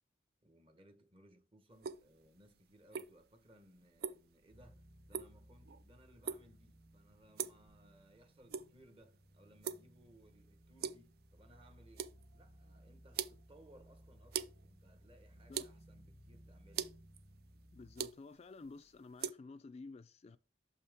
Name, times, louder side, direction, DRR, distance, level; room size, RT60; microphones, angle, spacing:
voice 1, 0.4-16.9, right 1 dB, 30° right, 1.0 m, -64 dB
sound 1, 1.7-19.3, right 7 dB, 60° right, 0.4 m, -46 dB
sound 2, 4.5-18.1, equal, 80° right, 2.0 m, -61 dB
voice 2, 17.7-20.4, left 3 dB, 35° left, 0.3 m, -52 dB
6.4 x 5.5 x 3.5 m
head